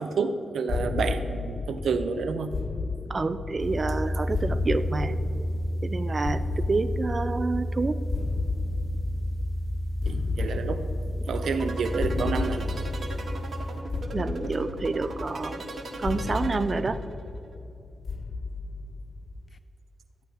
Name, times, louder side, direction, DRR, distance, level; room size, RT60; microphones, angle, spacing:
voice 1, 0.0-2.5 10.0-10.8 11.3-12.6, right 5 dB, 80° right, 9 dB, 0.7 m, -29 dB
sound 1, 0.7-19.6, left 4 dB, 50° left, 0.5 m, -34 dB
voice 2, 3.1-5.2 5.8-8.0 14.1-15.6 16.0-17.0, right 3 dB, 40° right, 12 dB, 0.6 m, -28 dB
sound 2, 3.6-13.8, equal, 25° left, 1.4 m, -31 dB
sound 3, 11.3-17.2, right 2 dB, 65° right, 1.6 m, -38 dB
14.0 x 8.7 x 4.6 m, 2.8 s
cardioid pair, 70°, 0 cm